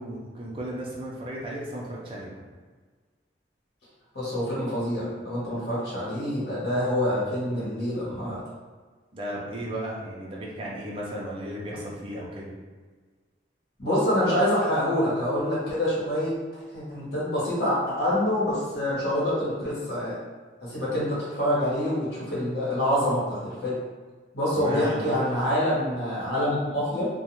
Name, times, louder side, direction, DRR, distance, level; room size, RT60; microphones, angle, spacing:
voice 1, 0.0-2.4 9.1-12.5 24.6-25.2, right 1 dB, 30° right, -5 dB, 0.5 m, -34 dB
voice 2, 4.1-8.4 13.8-16.3 16.7-20.1 20.6-23.8 24.3-27.1, left 1 dB, 65° left, -8 dB, 1.1 m, -26 dB
2.4 x 2.2 x 2.9 m, 1.4 s
head